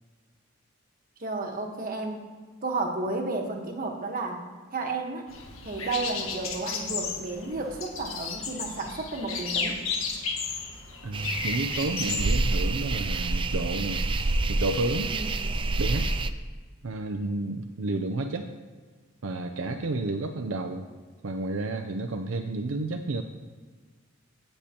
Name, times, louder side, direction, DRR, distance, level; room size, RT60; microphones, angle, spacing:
voice 1, 1.2-2.2 2.6-4.4 4.7-5.3 5.6-9.8 15.1-15.4, right 3 dB, 45° right, 3 dB, 1.3 m, -32 dB
sound 1, 5.3-12.4, left 5 dB, 85° left, 1.5 m, -33 dB
voice 2, 11.0-14.1 14.5-15.1 15.8-16.1 16.8-18.5 19.2-20.9 21.2-23.2, right 2 dB, 70° right, 6 dB, 0.6 m, -31 dB
sound 2, 11.1-16.3, right 2 dB, 25° right, 0.4 m, -28 dB
16.5 x 6.7 x 2.9 m, 1.5 s
head